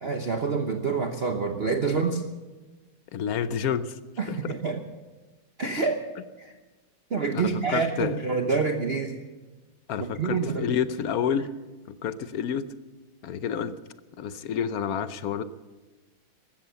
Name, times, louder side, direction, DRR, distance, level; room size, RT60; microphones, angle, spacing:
voice 1, 0.0-2.2 4.2-4.8 5.6-6.1 6.4-6.5 7.1-9.2 10.0-10.7, right 4 dB, 40° right, 5 dB, 0.9 m, -27 dB
voice 2, 3.1-4.0 4.3-4.5 7.3-8.2 9.9-11.5 11.9-12.7 13.2-13.8 14.2-15.4, left 8 dB, 65° left, 13 dB, 1.0 m, -29 dB
15.0 x 13.5 x 6.9 m, 1.2 s
omnidirectional pair, 2.2 m